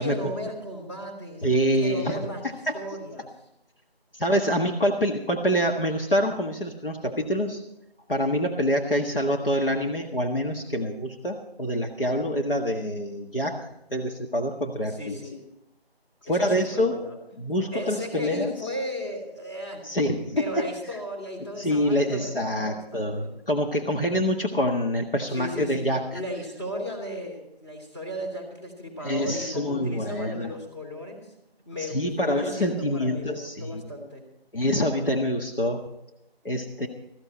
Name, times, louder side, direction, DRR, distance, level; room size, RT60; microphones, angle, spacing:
voice 1, 0.0-1.4 1.7-3.3 14.9-15.4 16.2-17.2 17.7-19.9 20.3-23.3 25.3-31.3 31.6-34.2, equal, 25° left, -1 dB, 3.1 m, -35 dB
voice 2, 1.4-2.2 2.7-2.8 4.1-7.6 8.1-15.2 16.2-17.0 17.4-18.5 19.8-20.7 21.6-26.1 29.0-30.5 31.8-33.9 34.5-35.8 36.4-36.9, equal, 60° left, 1 dB, 1.7 m, -26 dB
14.5 x 14.0 x 4.3 m, 0.85 s
figure-of-eight pair, 170°, 31 cm